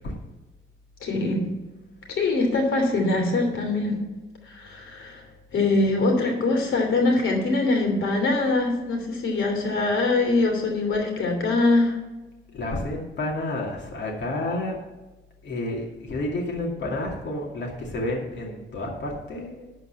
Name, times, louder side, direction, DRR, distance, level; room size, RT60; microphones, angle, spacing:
voice 1, 1.0-1.4 2.1-4.0 4.5-5.2 5.5-11.9, left 2 dB, 80° left, 2 dB, 3.0 m, -23 dB
voice 2, 12.5-14.7 15.4-19.6, left 1 dB, 60° left, -2 dB, 2.3 m, -30 dB
12.0 x 4.6 x 8.4 m, 1.1 s
wide cardioid pair, 145°, 20 cm